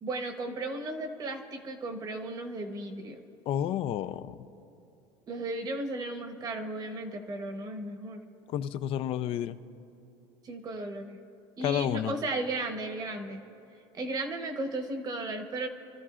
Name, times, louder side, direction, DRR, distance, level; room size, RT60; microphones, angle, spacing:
voice 1, 0.0-3.2 5.3-8.2 10.4-11.2 11.6-13.4 13.9-15.7, right 2 dB, 30° right, 5 dB, 1.1 m, -35 dB
voice 2, 3.5-4.4 8.5-9.6 11.6-12.1, left 10 dB, 45° left, 13 dB, 0.5 m, -30 dB
28.0 x 13.5 x 2.5 m, 2.8 s
cardioid pair, 145°, 13 cm